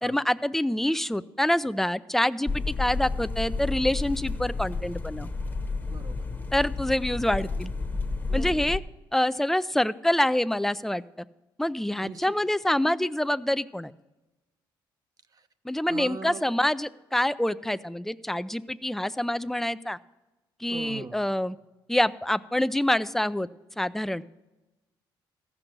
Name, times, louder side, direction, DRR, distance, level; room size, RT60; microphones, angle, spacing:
voice 1, 0.0-5.3 6.5-7.7 8.3-8.8 9.1-11.3 11.6-13.9 15.6-20.0 20.6-21.6 21.9-23.5 23.8-24.2, left 1 dB, 5° left, 14 dB, 0.4 m, -26 dB
sound 1, 2.5-8.8, left 3 dB, 20° left, 1.1 m, -31 dB
voice 2, 5.9-6.3 8.3-8.6 12.0-12.2 15.3-15.4 15.9-16.5 20.7-21.3, right 5 dB, 45° right, 10 dB, 0.9 m, -40 dB
14.5 x 6.1 x 6.5 m, 1.1 s
cardioid pair, 75°, 9 cm